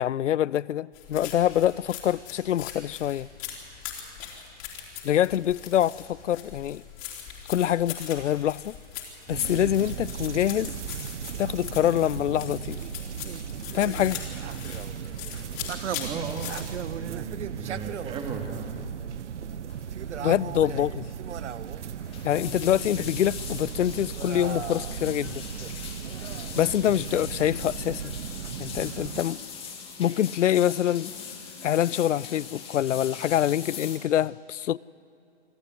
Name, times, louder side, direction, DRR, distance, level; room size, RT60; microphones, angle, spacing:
voice 1, 0.0-3.3 5.0-6.8 7.5-8.8 9.3-10.7 11.4-12.8 13.7-14.2 20.2-21.1 22.2-25.4 26.6-28.0 28.6-29.4 30.0-31.1 31.6-34.8, left 11 dB, 85° left, 0.5 m, -25 dB
sound 1, 0.9-16.6, left 9 dB, 30° left, 3.7 m, -41 dB
sound 2, 9.3-29.2, right 8 dB, 75° right, 0.9 m, -36 dB
voice 2, 16.0-16.5 16.9-18.7, right 5 dB, 15° right, 2.4 m, -36 dB
sound 3, 19.7-19.9 20.2-20.5 20.8-20.9 21.8-34.0, left 6 dB, 15° left, 2.4 m, -41 dB
25.5 x 15.0 x 9.6 m
hypercardioid pair, 140°, 35 cm